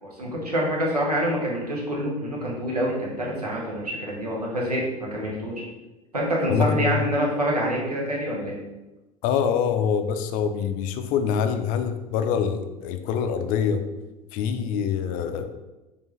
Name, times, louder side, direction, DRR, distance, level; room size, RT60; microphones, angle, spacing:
voice 1, 0.0-5.6 6.1-8.6, equal, 85° right, -3 dB, 1.0 m, -26 dB
voice 2, 6.5-7.0 9.2-13.8 14.3-15.5, left 7 dB, 45° left, 8 dB, 0.4 m, -25 dB
4.3 x 3.3 x 3.1 m, 1.1 s
figure-of-eight pair, 70°, 20 cm